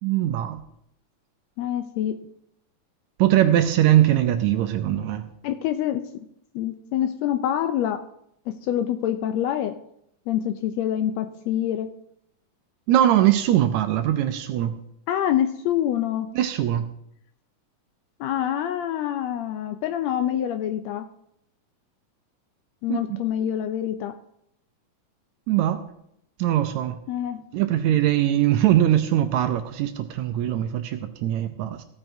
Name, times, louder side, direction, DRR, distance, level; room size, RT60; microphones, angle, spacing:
voice 1, 0.0-0.6 3.2-5.3 12.9-14.8 16.3-16.9 22.9-23.2 25.5-25.8 26.4-27.0 27.5-31.8, right 12 dB, 80° right, 8 dB, 1.7 m, -21 dB
voice 2, 1.6-2.1 5.4-6.0 6.5-8.0 8.5-9.7 10.3-11.9 15.1-16.3 18.2-21.0 22.8-24.1 27.1-27.4, left 11 dB, 90° left, 7 dB, 1.5 m, -26 dB
15.5 x 8.9 x 2.7 m, 0.74 s
omnidirectional pair, 3.7 m